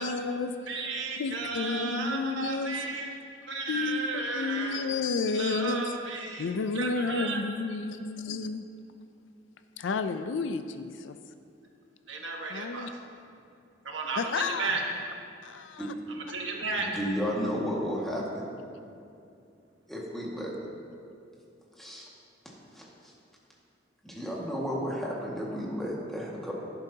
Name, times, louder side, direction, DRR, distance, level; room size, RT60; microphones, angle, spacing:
voice 1, 0.0-0.9 1.2-2.8 3.7-8.6 9.8-11.2 12.5-12.9 14.2-14.7 15.4-15.9, left 4 dB, 70° left, 9 dB, 0.4 m, -31 dB
voice 2, 0.7-3.1 3.5-4.8 5.3-6.5 6.7-7.4 12.1-12.9 13.8-14.8 16.3-16.9, right 4 dB, 75° right, 0 dB, 1.4 m, -33 dB
voice 3, 16.8-18.5 19.9-20.5 21.8-22.1 22.7-22.9 24.0-26.5, equal, ahead, -5 dB, 1.8 m, -33 dB
11.5 x 11.0 x 2.8 m, 2.6 s
head